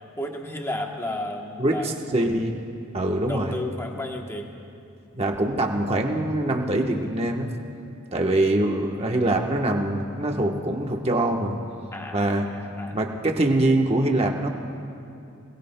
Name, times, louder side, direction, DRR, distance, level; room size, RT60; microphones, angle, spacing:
voice 1, 0.2-2.4 3.2-4.5 11.9-13.0, left 1 dB, 10° left, 2 dB, 1.0 m, -33 dB
voice 2, 2.1-2.5 2.9-3.5 5.1-7.5 8.1-11.6 12.1-12.4 12.9-14.5, right 1 dB, 30° right, 2 dB, 1.1 m, -23 dB
25.5 x 22.0 x 2.2 m, 2.6 s
head